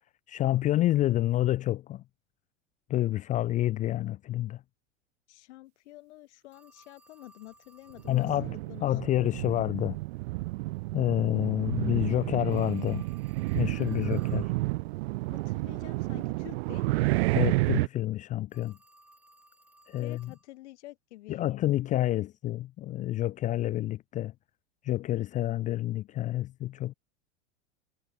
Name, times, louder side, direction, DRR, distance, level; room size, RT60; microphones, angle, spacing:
voice 1, 0.3-2.0 2.9-4.6 8.1-8.5 8.8-10.0 10.9-13.0 13.5-14.5 17.3-18.8 19.9-20.3 21.3-24.3 24.8-26.9, left 14 dB, 20° left, 0.4 m, -28 dB
voice 2, 5.3-9.1 15.3-17.2 20.0-21.6, left 18 dB, 60° left, 2.4 m, -49 dB
Telephone, 6.5-8.5 12.5-14.5 18.5-20.5, right 1 dB, 5° right, 2.6 m, -60 dB
sound 1, 8.0-17.9, right 22 dB, 55° right, 0.8 m, -30 dB
hypercardioid pair, 90°, 37 cm